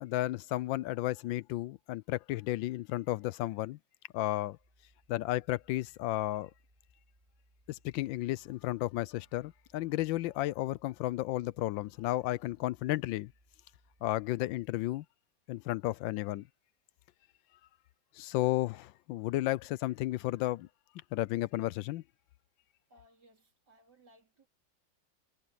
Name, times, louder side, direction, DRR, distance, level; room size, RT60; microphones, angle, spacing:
voice 1, 0.0-3.8 4.1-4.6 5.1-6.5 7.7-13.3 14.0-15.0 15.5-16.5 18.2-20.7 21.1-22.0, left 16 dB, 85° left, 1.3 m, -33 dB
sound 1, 4.6-14.9, equal, 20° right, 4.1 m, -69 dB
voice 2, 22.9-24.5, equal, 60° right, 4.5 m, -63 dB
omnidirectional pair, 2.0 m